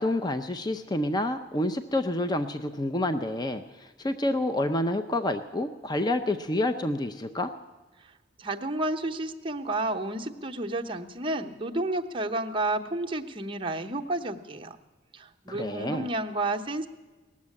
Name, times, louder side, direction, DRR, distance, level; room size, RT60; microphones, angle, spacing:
voice 1, 0.0-7.5 15.5-16.1, left 1 dB, 20° left, 9 dB, 0.5 m, -28 dB
voice 2, 8.4-14.8 15.1-16.9, right 2 dB, 25° right, 3 dB, 0.8 m, -31 dB
18.0 x 7.3 x 9.7 m, 1.3 s
head